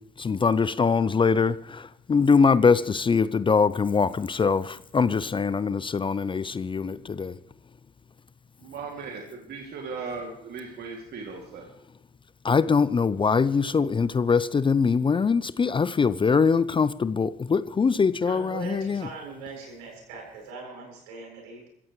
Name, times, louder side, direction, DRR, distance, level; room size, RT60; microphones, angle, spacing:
voice 1, 0.2-7.4 12.4-19.1, left 5 dB, 25° left, 0.6 m, -23 dB
voice 2, 8.6-11.7, right 4 dB, 55° right, 2.7 m, -37 dB
voice 3, 18.3-21.7, right 4 dB, 80° right, 7.3 m, -40 dB
24.5 x 14.5 x 3.2 m
hypercardioid pair, 55°, 20 cm